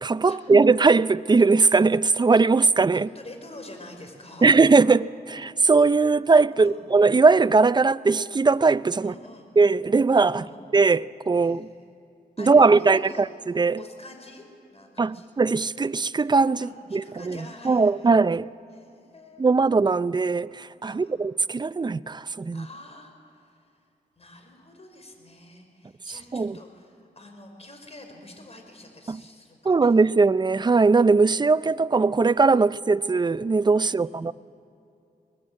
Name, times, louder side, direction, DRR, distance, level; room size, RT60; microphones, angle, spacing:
voice 1, 0.0-3.1 4.4-9.1 9.6-10.5 10.7-11.7 12.4-13.3 13.5-13.8 15.0-18.5 19.4-22.7 26.3-26.6 29.1-29.2 29.6-34.3, right 4 dB, 25° right, 0.5 m, -20 dB
voice 2, 2.9-4.6 6.5-6.8 9.0-9.5 10.3-10.6 11.3-11.9 12.4-13.3 13.8-15.3 16.6-18.1 18.7-19.7 20.8-21.1 22.5-23.8 24.2-29.9 31.1-31.3 32.6-32.8 33.8-34.3, left 2 dB, 40° left, 4.9 m, -46 dB
22.0 x 20.0 x 8.7 m
cardioid pair, 65°, 16 cm